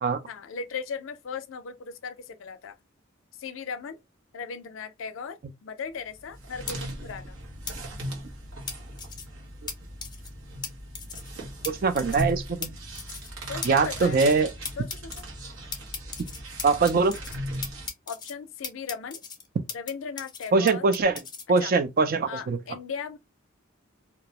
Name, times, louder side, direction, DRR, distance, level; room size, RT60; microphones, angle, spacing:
voice 1, 0.3-2.7 3.4-4.0 4.3-7.4 13.5-14.2 14.8-15.2 18.1-19.2 19.7-20.9 21.6-21.7 22.3-23.2, left 5 dB, 75° left, 0.4 m, -37 dB
sound 1, 6.1-17.9, right 1 dB, 80° right, 0.9 m, -38 dB
sound 2, 6.7-6.8 7.7-7.8 8.7-9.3 9.7-9.8 10.0-10.3 10.6-10.7 11.0-11.3 11.6-11.7 12.0-12.3 12.6-12.7 13.0-13.3 13.6-13.7 14.0-14.4 14.7-15.2 15.7-17.4 17.6-18.3 18.6-19.9 20.2-21.4, left 5 dB, 20° left, 0.5 m, -36 dB
voice 2, 11.7-12.7 13.6-14.5 16.6-17.2 20.5-21.1 21.5-22.6, right 4 dB, 45° right, 0.4 m, -22 dB
2.2 x 2.0 x 2.8 m
head